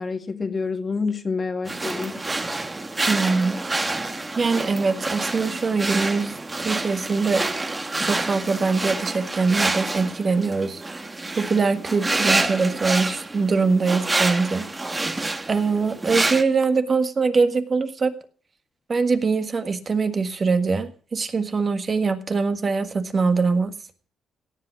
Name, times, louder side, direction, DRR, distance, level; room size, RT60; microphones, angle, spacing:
voice 1, 0.0-2.1, left 4 dB, 35° left, 1.9 m, -27 dB
sound 1, 1.7-16.4, right 2 dB, 20° right, 1.3 m, -27 dB
voice 2, 3.1-3.6 4.3-7.4 8.0-11.1 11.4-14.7 15.5-18.1 18.9-23.7, right 4 dB, 35° right, 1.6 m, -23 dB
17.0 x 7.8 x 6.0 m
cardioid pair, 90°, 0 cm